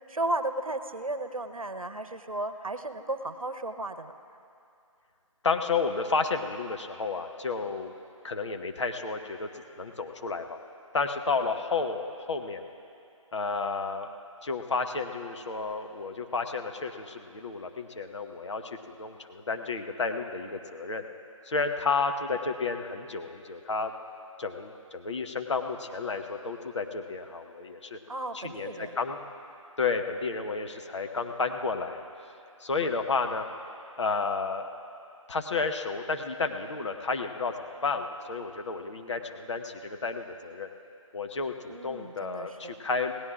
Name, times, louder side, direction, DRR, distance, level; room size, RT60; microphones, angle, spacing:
voice 1, 0.1-4.1 28.1-28.9 41.7-42.7, right 2 dB, 85° right, 9 dB, 0.9 m, -34 dB
voice 2, 5.4-7.9 8.2-9.5 9.8-10.6 10.9-12.6 13.3-14.1 14.4-21.0 21.5-23.9 24.4-28.0 28.3-29.2 29.8-32.0 32.6-33.4 34.0-34.7 35.3-37.5 37.8-40.7 41.1-43.1, left 4 dB, 55° left, 5 dB, 1.0 m, -31 dB
27.5 x 18.0 x 2.5 m, 2.6 s
figure-of-eight pair, 150°, 17 cm